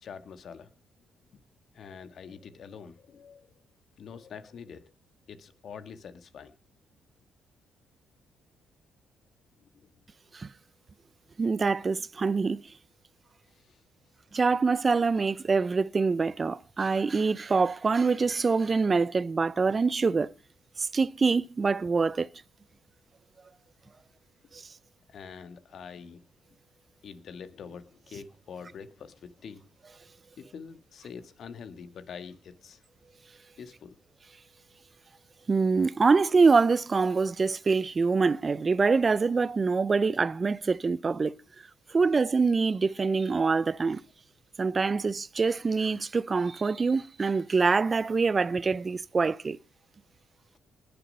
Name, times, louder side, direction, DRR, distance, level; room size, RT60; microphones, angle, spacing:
voice 1, 0.0-0.7 1.3-1.4 1.7-3.5 4.0-4.9 5.3-6.5 13.5-13.8 25.1-26.2 27.0-29.6 30.4-32.8 33.6-34.0, left 6 dB, 60° left, 1.6 m, -45 dB
voice 2, 11.4-12.6 14.3-20.3 20.8-22.3 24.5-24.6 35.5-41.3 41.9-44.0 44.6-49.6, right 4 dB, 35° right, 0.6 m, -25 dB
20.0 x 6.9 x 5.5 m
cardioid pair, 90°, 0 cm